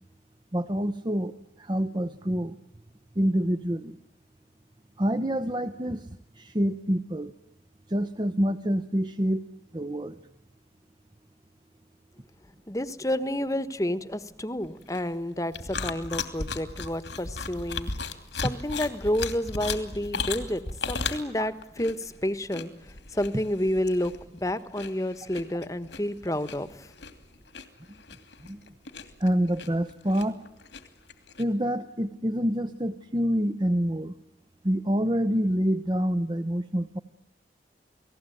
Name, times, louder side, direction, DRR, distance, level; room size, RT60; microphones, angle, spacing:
voice 1, 0.5-2.5 3.2-4.0 5.0-7.3 7.9-9.4 9.7-10.2 28.4-28.6 29.2-30.4 31.4-34.1 34.6-37.0, equal, 25° right, 11 dB, 0.9 m, -27 dB
voice 2, 12.7-17.9 18.4-24.1 24.4-26.9, left 1 dB, 20° left, 13 dB, 1.3 m, -30 dB
sound 1, 14.6-31.4, left 4 dB, 80° left, 2.8 m, -36 dB
29.5 x 19.5 x 9.2 m, 0.88 s
head